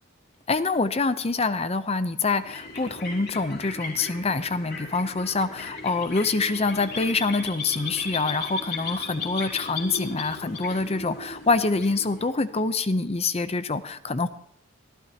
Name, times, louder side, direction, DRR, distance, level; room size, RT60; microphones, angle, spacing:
voice 1, 0.5-14.3, left 3 dB, 30° left, 12 dB, 0.6 m, -26 dB
sound 1, 2.2-12.6, left 4 dB, 55° left, 5.5 m, -36 dB
25.5 x 15.0 x 2.9 m, 0.68 s
head